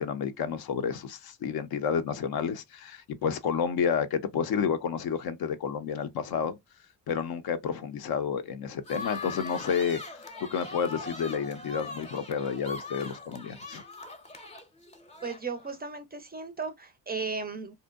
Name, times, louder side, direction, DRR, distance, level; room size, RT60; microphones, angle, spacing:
voice 1, 0.0-6.6 7.1-10.2 10.5-13.8, left 7 dB, 60° left, 0.6 m, -30 dB
sound 1, 8.8-15.8, left 3 dB, 15° left, 0.7 m, -41 dB
voice 2, 15.2-17.7, right 4 dB, 25° right, 0.4 m, -35 dB
2.6 x 2.1 x 2.2 m
supercardioid pair, 70°, 42 cm